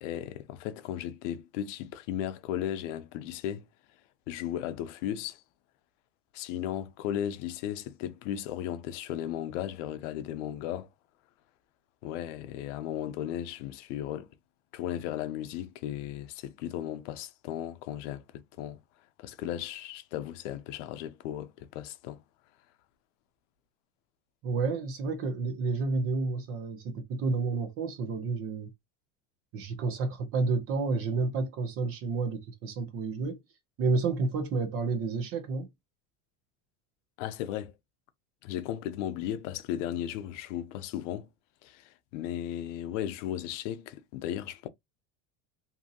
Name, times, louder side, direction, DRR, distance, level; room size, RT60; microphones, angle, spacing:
voice 1, 0.0-3.6 4.3-5.4 6.3-10.9 12.0-14.3 14.7-18.8 19.2-22.2 37.2-37.7 38.4-41.3 41.6-44.7, left 11 dB, 85° left, 0.6 m, -35 dB
voice 2, 24.4-28.7 29.5-33.4 33.8-35.7, right 4 dB, 40° right, 0.7 m, -30 dB
2.7 x 2.5 x 2.6 m
cardioid pair, 170°, 36 cm